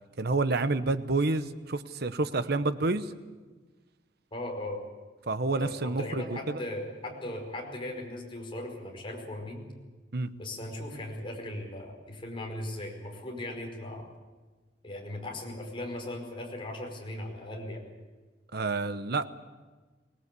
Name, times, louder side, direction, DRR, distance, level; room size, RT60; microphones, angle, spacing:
voice 1, 0.2-3.1 5.3-6.6 10.1-10.3 18.5-19.2, right 3 dB, 60° right, 12 dB, 1.0 m, -29 dB
voice 2, 4.3-4.8 5.6-9.7 10.4-14.0 14.8-17.8, left 1 dB, 30° left, 0 dB, 5.0 m, -38 dB
24.0 x 19.0 x 8.4 m, 1.3 s
head